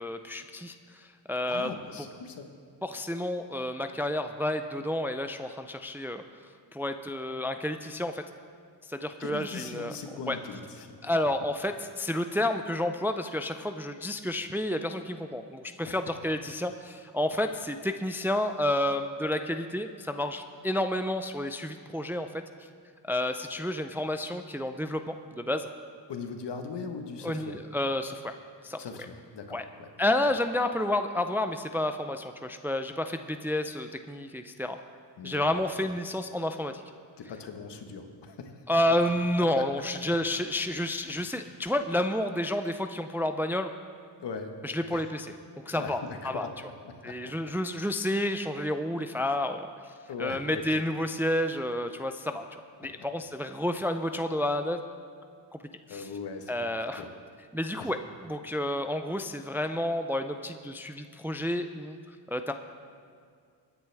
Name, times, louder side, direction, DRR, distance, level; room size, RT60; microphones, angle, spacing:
voice 1, 0.0-1.7 2.8-6.2 6.7-8.2 8.9-9.9 10.3-10.4 11.0-22.3 23.1-25.7 27.2-28.3 28.6-28.8 29.5-29.7 30.0-34.8 35.2-36.8 38.7-43.7 44.6-45.3 45.6-46.5 47.0-49.9 50.2-54.8 55.9-56.1 56.5-57.1 57.5-62.0 62.3-62.5, left 1 dB, 5° right, 7 dB, 0.4 m, -30 dB
voice 2, 1.5-2.5 9.2-10.9 15.8-16.0 26.1-27.6 28.8-29.9 35.2-35.9 37.2-38.6 39.5-39.6 41.1-41.3 44.2-44.5 44.9-45.1 45.7-46.5 46.8-47.3 50.1-50.8 55.9-56.5 56.9-57.1 57.8-57.9, left 5 dB, 65° left, 5 dB, 1.4 m, -40 dB
21.5 x 9.7 x 3.5 m, 2.1 s
cardioid pair, 100°, 44 cm